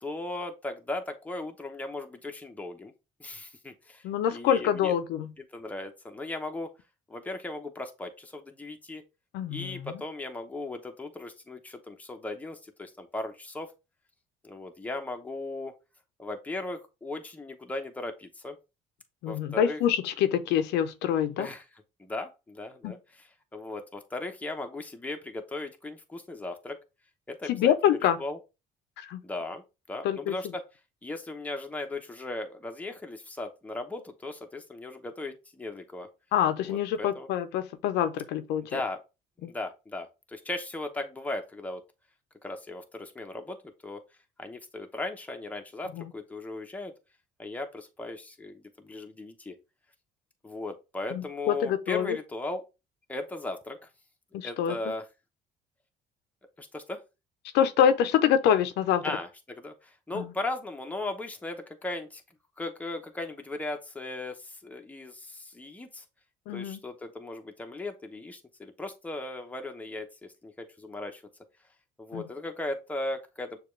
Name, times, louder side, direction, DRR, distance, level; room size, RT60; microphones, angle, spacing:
voice 1, 0.0-2.9 3.2-4.9 5.4-6.7 7.1-9.0 9.5-13.7 14.4-15.7 16.2-18.6 19.3-19.8 21.4-21.7 22.0-26.8 27.3-28.4 29.2-30.6 31.0-36.1 36.6-37.3 38.7-39.0 39.4-41.8 42.4-43.6 43.8-44.0 44.4-46.9 47.4-49.5 50.4-52.6 53.1-53.8 54.4-55.1 56.6-57.0 59.0-62.2 62.6-66.0 66.5-71.2 72.0-73.6, left 2 dB, 10° left, 0.8 m, -37 dB
voice 2, 4.0-5.3 9.3-9.9 19.2-21.5 22.8-22.9 27.5-28.2 29.0-29.2 30.0-30.3 36.3-38.8 39.4-39.5 45.9-46.0 51.1-52.2 54.3-54.8 57.5-59.0 60.1-60.2 66.5-66.8 72.1-72.2, left 9 dB, 85° left, 0.6 m, -26 dB
6.6 x 2.4 x 3.1 m
cardioid pair, 110°, 17 cm